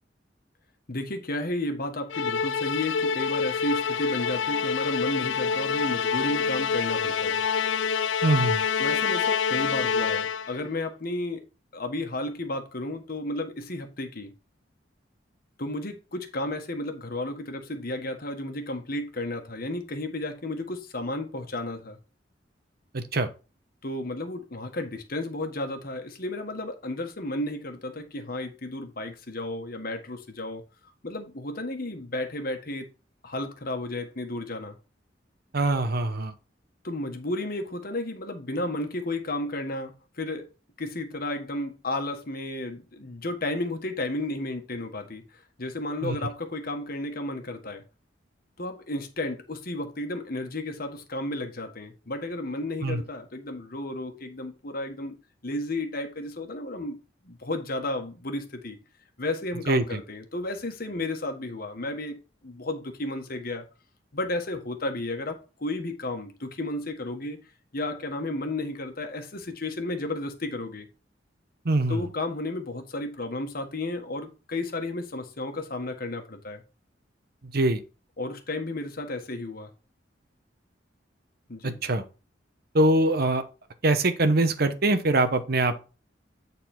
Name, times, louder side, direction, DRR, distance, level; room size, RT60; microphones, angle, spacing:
voice 1, 0.9-7.4 8.8-11.4 11.7-14.3 15.6-22.0 23.8-30.6 31.0-32.9 33.2-34.8 36.8-40.5 40.8-45.2 45.6-47.8 48.6-55.2 55.4-57.0 57.2-58.8 59.2-62.2 62.4-63.6 64.1-67.4 67.7-70.9 71.9-76.6 78.2-79.7 81.5-81.8, left 2 dB, 55° left, 1.4 m, -33 dB
Musical instrument, 2.1-10.6, left 6 dB, 90° left, 0.4 m, -26 dB
voice 2, 8.2-8.6 22.9-23.3 35.5-36.3 46.0-46.2 52.8-53.0 59.7-60.0 71.6-72.0 77.5-77.8 81.6-82.0 82.7-83.4 83.8-85.8, right 2 dB, 55° right, 0.9 m, -23 dB
9.1 x 4.1 x 4.4 m
head